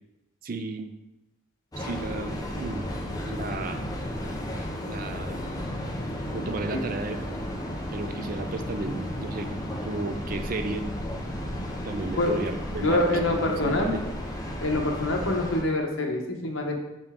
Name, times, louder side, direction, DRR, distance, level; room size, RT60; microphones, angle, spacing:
voice 1, 0.4-0.9 1.8-2.9 3.3-3.8 4.7-5.4 6.3-7.2 7.9-9.5 9.8-10.9 11.8-13.0 13.3-14.0, right 2 dB, 45° right, 7 dB, 0.5 m, -33 dB
Train, 1.7-15.6, equal, 20° left, 0.7 m, -34 dB
voice 2, 12.8-13.9 14.6-16.8, left 1 dB, 75° left, 1 dB, 1.1 m, -25 dB
5.9 x 5.2 x 3.7 m, 0.94 s
head